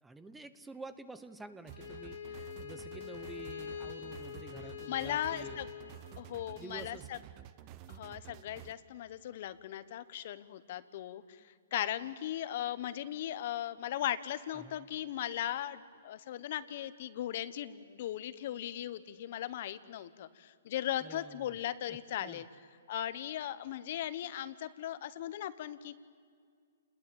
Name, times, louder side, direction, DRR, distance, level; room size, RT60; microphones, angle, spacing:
voice 1, 0.0-5.6 6.6-7.3 14.5-14.9 21.0-21.5 21.9-22.4, right 3 dB, 5° right, 12 dB, 1.0 m, -49 dB
Bowed string instrument, 1.7-6.6, left 8 dB, 80° left, 2.8 m, -45 dB
sound 1, 1.7-8.7, right 12 dB, 30° right, 1.0 m, -51 dB
voice 2, 4.9-5.7 6.2-7.2 7.9-22.5 22.9-26.0, left 12 dB, 50° left, 13 dB, 1.2 m, -38 dB
29.0 x 21.0 x 8.8 m, 2.1 s
hypercardioid pair, 150°, 0 cm